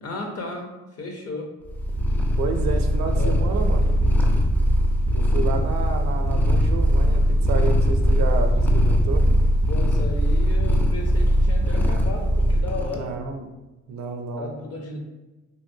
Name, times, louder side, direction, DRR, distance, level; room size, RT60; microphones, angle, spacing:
voice 1, 0.0-0.7 1.0-1.5 2.7-4.0 9.7-13.1 14.3-15.0, left 2 dB, 55° left, 1 dB, 0.8 m, -35 dB
Purr, 1.7-13.0, equal, 5° left, 0.3 m, -20 dB
voice 2, 2.4-3.9 5.1-9.2 12.9-13.5 13.9-14.5, right 4 dB, 65° right, 5 dB, 0.5 m, -30 dB
3.3 x 2.5 x 2.6 m, 1.1 s
cardioid pair, 90°, 30 cm